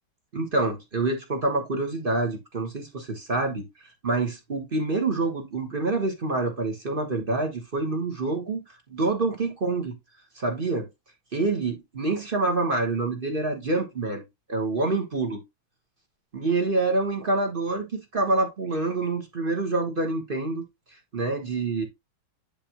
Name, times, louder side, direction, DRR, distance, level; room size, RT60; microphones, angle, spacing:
voice 1, 0.3-3.6 4.0-9.9 10.3-10.9 11.3-14.2 14.5-15.4 16.3-20.6 21.1-21.8, right 3 dB, 30° right, 1.1 m, -26 dB
10.5 x 3.5 x 2.9 m
omnidirectional pair, 2.3 m